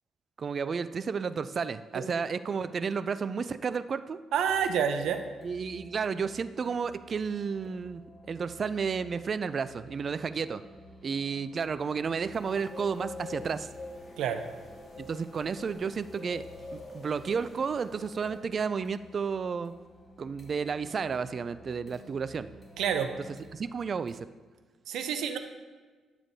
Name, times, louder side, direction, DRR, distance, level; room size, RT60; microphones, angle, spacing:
voice 1, 0.4-4.2 5.4-8.0 8.3-10.6 11.0-13.7 15.0-16.5 16.7-19.7 20.2-22.5 23.5-24.2, right 5 dB, 45° right, 14 dB, 0.3 m, -32 dB
voice 2, 4.3-5.2 14.2-14.4 22.8-23.1 24.9-25.4, right 8 dB, 80° right, 8 dB, 0.6 m, -28 dB
sound 1, 4.4-24.2, left 1 dB, 15° left, 2.2 m, -53 dB
sound 2, 12.3-18.4, left 2 dB, 35° left, 1.9 m, -45 dB
12.0 x 7.0 x 2.7 m, 1.4 s
cardioid pair, 90°, 0 cm